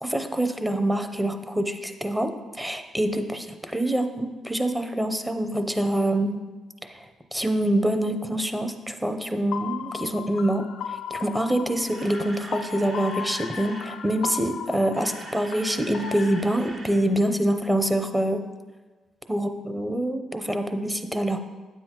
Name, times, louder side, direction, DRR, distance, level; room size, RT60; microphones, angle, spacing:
voice 1, 0.0-2.3 2.6-6.4 6.9-18.4 19.3-21.4, right 1 dB, 10° right, 7 dB, 0.7 m, -25 dB
sound 1, 9.5-16.4, left 8 dB, 75° left, 0.4 m, -36 dB
Camera, 11.8-14.0 14.7-17.0 17.3-17.4 17.9-18.0, right 2 dB, 55° right, 1.2 m, -43 dB
9.3 x 7.8 x 3.0 m, 1.3 s
cardioid pair, 90°, 0 cm